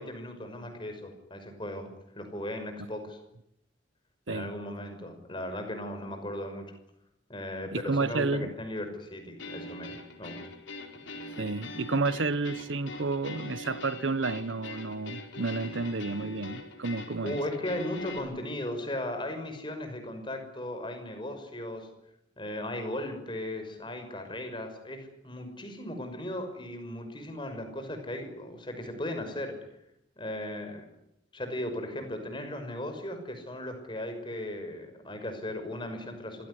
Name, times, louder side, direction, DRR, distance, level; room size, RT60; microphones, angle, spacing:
voice 1, 0.0-1.9 2.2-3.2 4.3-6.8 7.3-10.4 17.2-21.9 22.4-29.5 30.2-30.8 31.3-36.5, left 1 dB, 25° left, 5.8 m, -37 dB
voice 2, 7.7-8.5 11.4-17.4, right 3 dB, 80° right, 1.2 m, -31 dB
sound 1, 9.4-18.2, left 2 dB, 80° left, 4.6 m, -42 dB
26.5 x 17.0 x 9.9 m
head